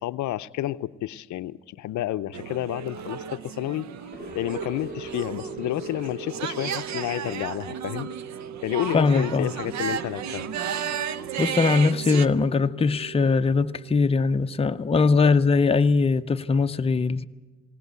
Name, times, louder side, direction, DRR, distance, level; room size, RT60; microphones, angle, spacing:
voice 1, 0.0-3.9 4.3-8.1 8.6-10.5, left 14 dB, 75° left, 0.6 m, -30 dB
sound 1, 2.3-12.3, right 8 dB, 65° right, 0.9 m, -34 dB
sound 2, 4.1-15.0, right 5 dB, 30° right, 5.4 m, -41 dB
voice 2, 8.9-9.5 11.4-17.2, left 4 dB, 20° left, 0.6 m, -21 dB
19.5 x 18.0 x 8.1 m
cardioid pair, 90°, 30 cm